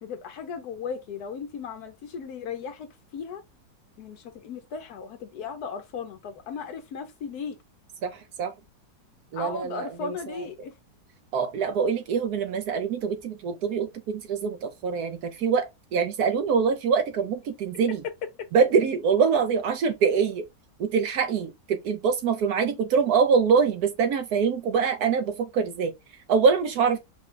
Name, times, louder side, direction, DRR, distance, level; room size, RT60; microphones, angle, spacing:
voice 1, 0.0-3.4 4.0-7.6 9.3-10.7 18.4-18.5, left 6 dB, 65° left, 1.1 m, -36 dB
voice 2, 9.3-9.9 11.3-18.0 18.5-20.4 20.8-25.9 26.3-27.0, right 6 dB, 70° right, 1.0 m, -24 dB
4.9 x 2.2 x 3.7 m
omnidirectional pair, 1.9 m